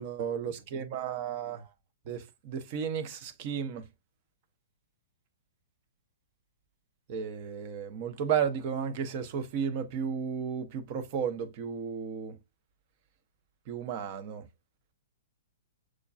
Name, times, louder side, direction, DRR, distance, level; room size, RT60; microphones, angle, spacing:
voice 1, 0.0-1.7 2.1-3.9 7.1-12.4 13.7-14.5, right 7 dB, 40° right, 0.7 m, -33 dB
6.1 x 2.2 x 2.4 m
figure-of-eight pair, 115°, 0 cm